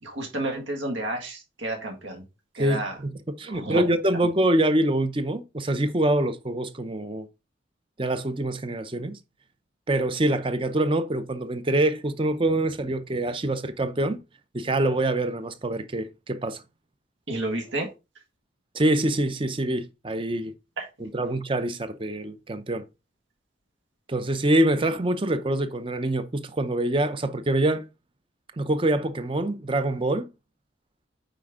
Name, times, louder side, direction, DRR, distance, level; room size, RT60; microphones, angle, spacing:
voice 1, 0.0-2.2 2.5-3.0 3.5-3.9 17.3-17.9 20.8-20.9, right 1 dB, 75° right, 1.9 m, -31 dB
voice 2, 2.6-7.3 8.0-9.2 9.9-14.2 14.5-16.6 18.7-20.5 21.0-22.8 24.1-27.9 28.6-30.3, right 1 dB, 25° right, 0.6 m, -25 dB
9.0 x 4.4 x 3.7 m
head